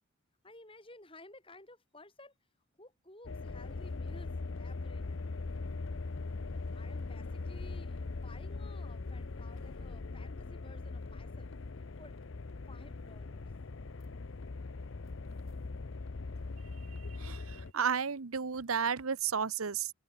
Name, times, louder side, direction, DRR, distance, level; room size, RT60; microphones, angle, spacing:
voice 1, 0.4-2.3 2.8-5.3 6.5-11.5 12.0-12.2 12.7-13.5, left 2 dB, 25° left, 5.4 m, -55 dB
sound 1, 3.2-17.7, left 3 dB, 65° left, 0.7 m, -41 dB
voice 2, 17.2-19.9, right 6 dB, 90° right, 0.9 m, -33 dB
head